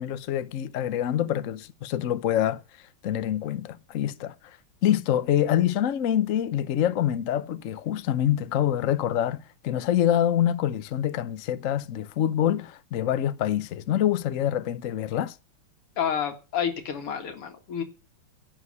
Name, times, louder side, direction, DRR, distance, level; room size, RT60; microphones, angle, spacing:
voice 1, 0.0-2.6 3.0-4.3 4.8-15.3, left 11 dB, 65° left, 0.8 m, -26 dB
voice 2, 16.0-17.8, left 8 dB, 85° left, 2.8 m, -29 dB
11.0 x 7.8 x 9.6 m
omnidirectional pair, 2.4 m